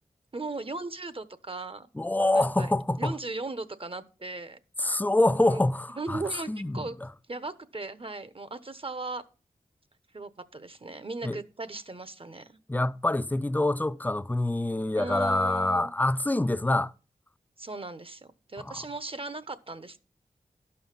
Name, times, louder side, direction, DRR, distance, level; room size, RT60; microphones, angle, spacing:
voice 1, 0.3-1.9 2.3-2.7 3.0-4.6 5.3-5.6 6.0-6.9 7.3-9.2 10.1-12.6 14.9-15.9 17.6-20.0, right 3 dB, 40° right, 1.1 m, -37 dB
voice 2, 2.0-3.2 4.8-6.2 6.5-6.8 11.2-11.4 12.7-16.9 18.6-18.7, left 2 dB, 10° left, 0.5 m, -26 dB
12.0 x 5.6 x 5.8 m
cardioid pair, 40°, 14 cm